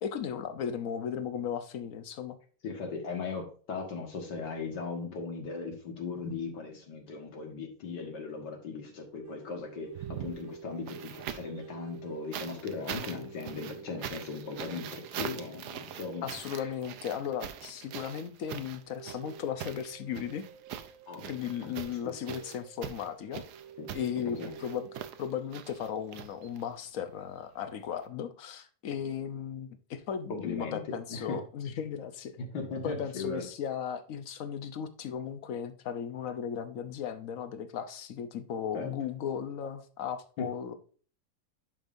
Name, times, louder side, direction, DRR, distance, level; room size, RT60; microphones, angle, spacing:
voice 1, 0.0-2.4 16.2-20.4 21.3-23.4 23.9-24.9 25.2-32.4 32.8-40.8, left 8 dB, 60° left, 9 dB, 1.0 m, -36 dB
voice 2, 2.6-16.7 21.1-21.3 21.6-21.7 23.8-23.9 24.3-24.7 30.3-31.4 32.4-33.5 38.7-38.9 40.4-40.5, left 4 dB, 85° left, 2 dB, 2.2 m, -38 dB
sound 1, 9.2-17.9 18.2-18.3 18.8-25.2, right 7 dB, 55° right, 1.0 m, -50 dB
sound 2, 9.9-11.6 12.3-26.8 28.0-28.1, right 10 dB, 75° right, 1.2 m, -43 dB
10.5 x 5.2 x 2.6 m, 0.42 s
omnidirectional pair, 1.8 m